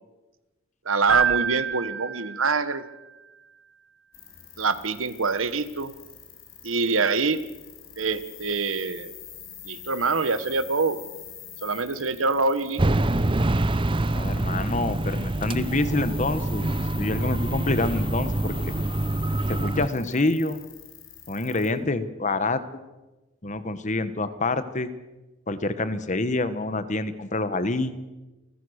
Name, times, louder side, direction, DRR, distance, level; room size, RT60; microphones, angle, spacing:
voice 1, 0.8-2.8 4.6-5.9 6.6-7.4 8.0-9.1 9.6-11.0 11.6-12.8, right 4 dB, 85° right, 13 dB, 1.4 m, -25 dB
Keyboard (musical), 1.1-2.9, right 8 dB, 65° right, 1.6 m, -27 dB
sound 1, 4.1-21.7, left 9 dB, 90° left, 4.8 m, -45 dB
sound 2, 12.8-19.9, right 2 dB, 25° right, 0.6 m, -25 dB
voice 2, 14.1-16.7 17.0-18.7 19.5-20.6 21.3-22.6 23.4-24.9 25.5-28.0, left 2 dB, 35° left, 12 dB, 1.2 m, -27 dB
29.0 x 15.0 x 6.5 m, 1.1 s
head